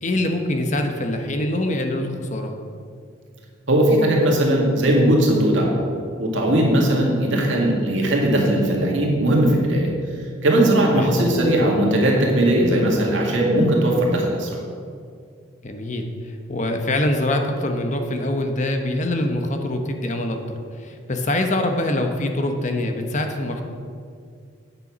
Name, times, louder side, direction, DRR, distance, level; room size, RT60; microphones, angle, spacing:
voice 1, 0.0-2.5 10.9-11.1 15.6-16.1 16.5-20.4 20.8-23.6, left 1 dB, 40° left, 5 dB, 0.9 m, -24 dB
voice 2, 3.7-5.7 6.2-9.9 10.4-14.6, right 1 dB, 85° right, -1 dB, 2.1 m, -18 dB
8.9 x 6.8 x 6.1 m, 2.2 s
head